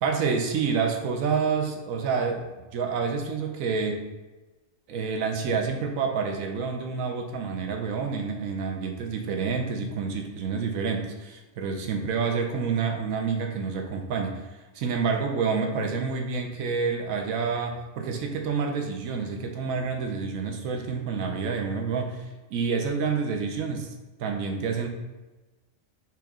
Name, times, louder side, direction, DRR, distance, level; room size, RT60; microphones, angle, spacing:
voice 1, 0.0-4.0 4.9-14.5 14.7-22.2 22.5-23.9 24.2-24.9, right 5 dB, 85° right, 3 dB, 1.1 m, -28 dB
4.6 x 3.0 x 3.6 m, 1.2 s
omnidirectional pair, 1.4 m